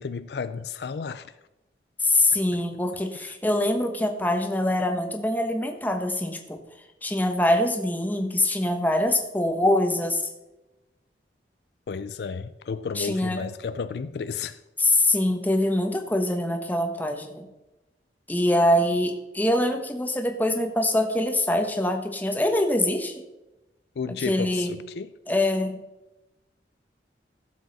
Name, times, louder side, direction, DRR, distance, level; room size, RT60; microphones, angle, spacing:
voice 1, 0.0-1.3 2.3-2.6 3.2-3.3 11.9-14.6 24.0-25.1, left 5 dB, 65° left, 0.4 m, -33 dB
voice 2, 2.0-6.6 7.0-10.2 13.0-13.4 14.8-17.5 18.3-23.1 24.1-24.8 25.3-25.8, left 1 dB, 10° left, 1.1 m, -24 dB
15.5 x 7.2 x 4.1 m
head